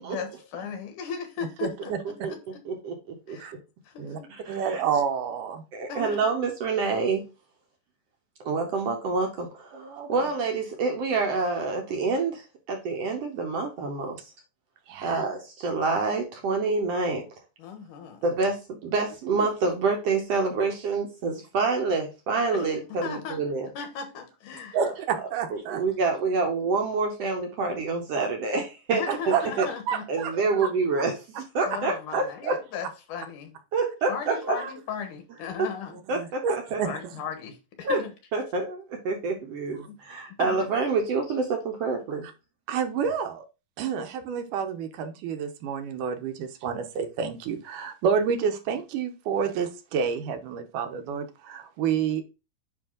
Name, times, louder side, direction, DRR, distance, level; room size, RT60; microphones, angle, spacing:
voice 1, 0.1-2.6 3.3-3.5 3.9-4.3 5.9-6.4 17.6-18.2 22.5-23.4 23.7-24.8 28.9-30.1 30.5-30.7 31.7-33.6 34.1-36.0 36.8-38.1 39.9-40.0 40.4-40.6, left 7 dB, 75° left, 2.7 m, -37 dB
voice 2, 1.6-2.0 3.4-3.5 4.0-4.2 4.5-5.6 9.7-10.3 14.9-15.2 19.2-19.5 24.7-25.8 29.1-29.4 29.9-30.3 34.6-34.7 36.1-36.9 42.7-43.4 43.8-52.2, right 7 dB, 85° right, 2.4 m, -29 dB
voice 3, 2.6-3.4 4.4-4.8 5.7-7.3 8.4-14.3 15.0-17.3 18.2-23.7 24.8-24.9 25.5-28.6 28.9-29.7 30.1-31.1 31.5-32.6 33.7-34.6 36.1-36.8 37.8-38.0 38.3-42.3, right 4 dB, 65° right, 1.6 m, -27 dB
9.7 x 3.2 x 3.7 m
omnidirectional pair, 3.7 m